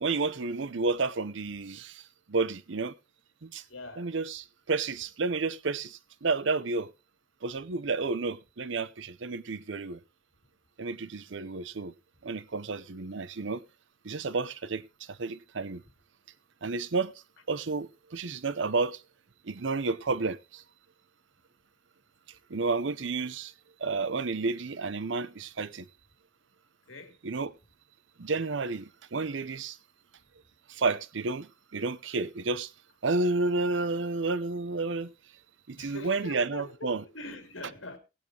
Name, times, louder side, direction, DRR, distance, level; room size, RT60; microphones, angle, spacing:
voice 1, 0.0-2.0 2.3-2.9 3.4-3.6 4.0-6.9 7.4-10.0 10.8-11.9 12.2-13.6 14.0-14.8 15.1-15.8 16.6-17.1 17.5-19.0 19.4-20.6 22.5-23.5 23.8-25.9 27.2-27.5 28.2-29.8 30.7-32.7 33.0-35.1 35.7-37.0, right 3 dB, 70° right, 0.7 m, -31 dB
voice 2, 3.7-4.1 26.9-27.2 35.7-38.0, left 2 dB, 85° left, 2.4 m, -43 dB
18.5 x 8.9 x 2.8 m
head